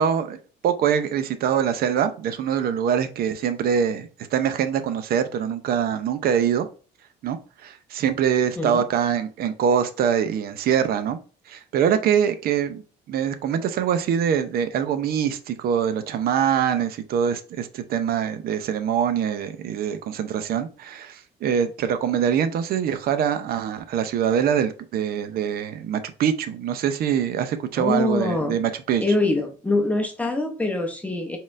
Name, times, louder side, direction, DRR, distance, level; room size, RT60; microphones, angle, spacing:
voice 1, 0.0-6.7 7.2-11.2 11.5-29.0, right 8 dB, 65° right, 11 dB, 0.6 m, -24 dB
voice 2, 27.8-28.6 29.0-31.4, left 2 dB, 10° left, 2 dB, 0.7 m, -24 dB
4.1 x 3.8 x 2.5 m, 0.37 s
cardioid pair, 110°, 17 cm